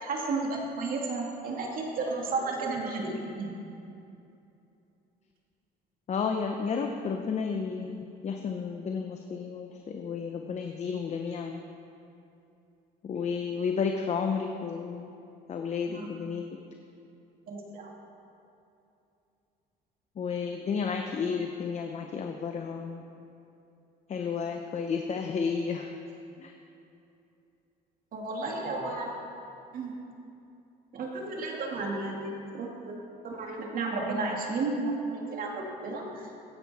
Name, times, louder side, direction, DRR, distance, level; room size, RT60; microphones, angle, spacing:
voice 1, 0.0-3.5 15.9-16.1 17.5-17.9 28.1-29.2 29.7-29.9 30.9-33.0 33.2-36.3, right 3 dB, 55° right, -1 dB, 2.3 m, -33 dB
voice 2, 6.1-11.6 13.0-15.1 15.5-16.4 20.2-23.0 24.1-25.9 26.4-26.5, left 5 dB, 40° left, 4 dB, 0.8 m, -32 dB
16.0 x 9.7 x 4.2 m, 2.7 s
cardioid pair, 110°, 17 cm